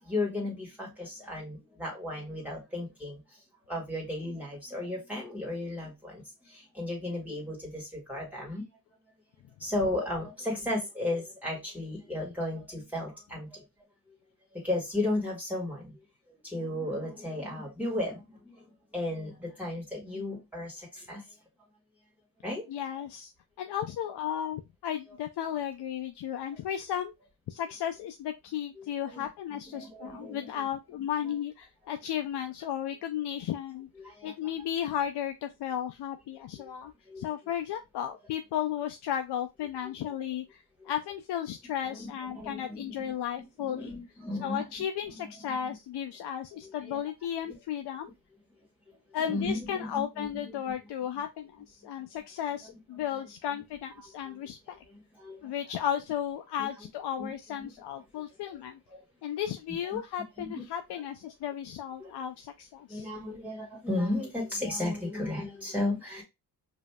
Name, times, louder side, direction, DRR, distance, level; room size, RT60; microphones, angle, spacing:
voice 1, 0.0-3.2 3.7-8.6 9.6-13.6 14.5-16.0 16.4-21.2 22.4-22.7 25.1-25.2 28.8-28.9 29.1-29.3 29.7-30.7 34.0-34.3 36.6-36.7 37.1-37.3 40.1-40.2 40.8-40.9 41.9-43.3 43.6-44.6 45.0-45.7 46.6-47.0 47.5-47.6 48.9-49.0 49.3-50.6 54.3-54.4 54.9-55.5 56.6-56.7 57.2-57.3 58.2-58.3 58.9-59.0 59.9-60.0 60.4-60.6 62.0-62.1 62.9-66.2, left 1 dB, 5° right, 1.8 m, -35 dB
voice 2, 22.7-23.3 23.6-27.1 27.5-33.9 34.2-36.9 37.2-43.9 44.4-48.1 49.1-54.8 55.4-58.8 59.2-63.1, left 10 dB, 85° left, 0.5 m, -34 dB
5.0 x 2.7 x 2.2 m
cardioid pair, 80°, 39 cm